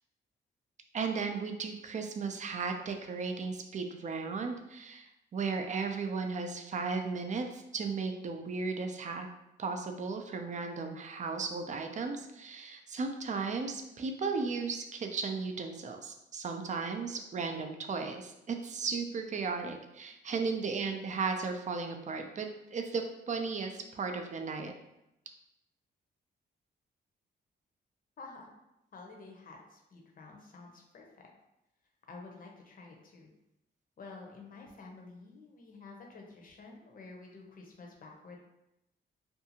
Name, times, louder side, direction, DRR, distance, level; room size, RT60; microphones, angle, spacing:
voice 1, 0.9-9.3 9.6-24.7, right 4 dB, 40° right, 5 dB, 0.4 m, -35 dB
voice 2, 28.2-28.5 28.9-31.3 32.1-33.3 34.0-38.4, left 3 dB, 45° left, 1 dB, 0.6 m, -50 dB
2.6 x 2.3 x 2.8 m, 0.89 s
cardioid pair, 95°, 20 cm